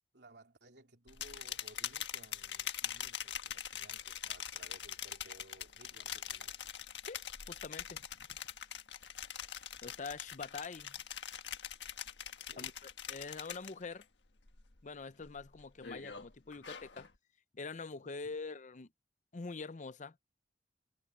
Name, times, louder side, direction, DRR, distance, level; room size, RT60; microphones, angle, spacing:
voice 1, 0.1-6.6 12.4-12.8 16.5-16.8 18.0-18.4, right 1 dB, 70° right, 3.4 m, -60 dB
sound 1, 1.1-14.0 14.4-14.8 15.2-17.1, left 9 dB, 85° left, 1.5 m, -43 dB
voice 2, 7.0-8.1 9.8-11.0 12.6-14.1 14.8-17.1 17.5-18.9 19.3-20.2, left 4 dB, 45° left, 0.7 m, -45 dB
head